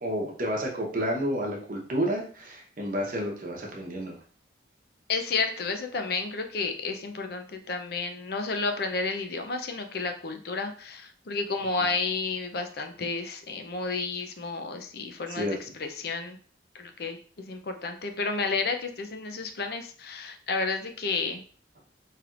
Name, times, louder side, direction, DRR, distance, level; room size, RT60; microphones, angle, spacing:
voice 1, 0.0-4.2 15.4-15.5, equal, 50° right, -1 dB, 0.9 m, -30 dB
voice 2, 5.1-15.5 15.8-16.4 16.8-21.4, left 4 dB, 55° left, 6 dB, 0.5 m, -31 dB
4.4 x 3.3 x 2.4 m, 0.43 s
head